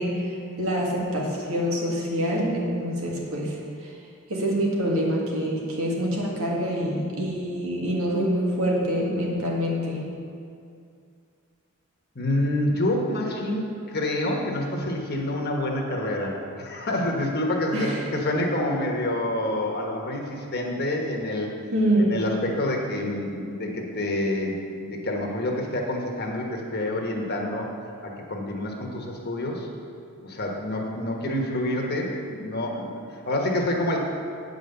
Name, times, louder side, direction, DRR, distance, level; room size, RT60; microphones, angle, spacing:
voice 1, 0.0-4.0 4.3-10.1 17.7-18.1 21.7-22.2, equal, 80° right, -2 dB, 1.8 m, -26 dB
voice 2, 12.1-21.5 22.0-27.7 28.0-29.7 30.2-34.0, left 1 dB, 50° left, 0 dB, 1.2 m, -27 dB
8.8 x 5.2 x 6.9 m, 2.4 s
head